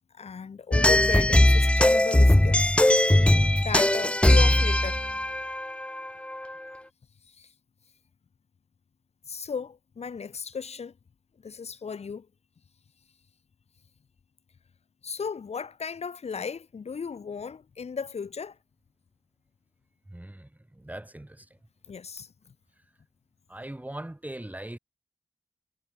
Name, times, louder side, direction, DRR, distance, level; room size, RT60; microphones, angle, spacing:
voice 1, 0.1-2.8 3.6-5.0 7.3-7.5 9.3-10.9 11.4-12.3 15.0-18.6 21.9-22.5, left 6 dB, 70° left, 3.7 m, -35 dB
sound 1, 0.7-6.5, left 1 dB, 10° left, 1.0 m, -20 dB
voice 2, 20.1-21.5 23.5-24.8, right 1 dB, 15° right, 6.1 m, -40 dB
cardioid pair, 65°, 11 cm